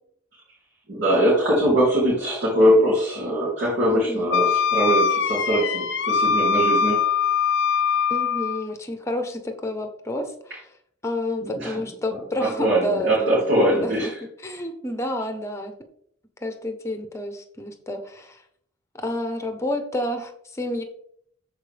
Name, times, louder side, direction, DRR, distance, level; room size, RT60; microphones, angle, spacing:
voice 1, 0.9-7.0 11.4-11.8 12.4-14.2, right 1 dB, 55° right, -8 dB, 3.5 m, -21 dB
voice 2, 3.9-4.3 8.1-10.3 11.0-14.1 14.4-15.7 16.4-18.4 18.9-20.8, left 1 dB, 15° left, 6 dB, 1.0 m, -29 dB
Wind instrument woodwind instrument, 4.3-8.7, left 6 dB, 60° left, 0.7 m, -22 dB
13.0 x 4.7 x 3.5 m, 0.67 s
head